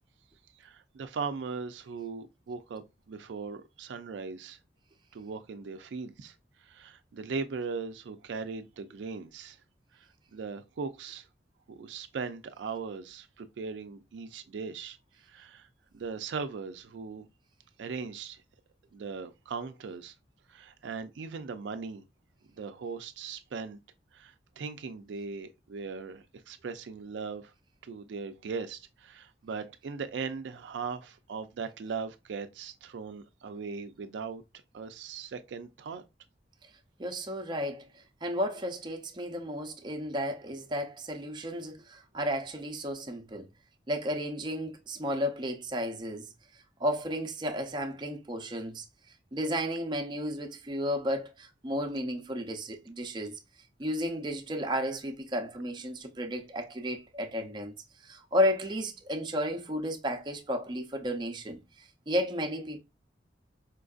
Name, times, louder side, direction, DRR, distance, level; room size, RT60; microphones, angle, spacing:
voice 1, 0.5-4.6 5.1-9.6 9.9-11.3 11.7-15.0 15.2-15.7 15.9-17.3 17.8-18.4 18.9-20.1 20.5-22.0 22.5-23.8 24.1-27.5 27.8-34.4 34.7-36.0, right 5 dB, 80° right, 0.4 m, -39 dB
voice 2, 37.0-37.9 38.2-43.5 43.9-46.3 46.8-48.8 49.3-53.4 53.8-57.7 58.0-61.6 62.1-62.8, equal, 25° right, 0.5 m, -33 dB
4.4 x 2.5 x 2.4 m
head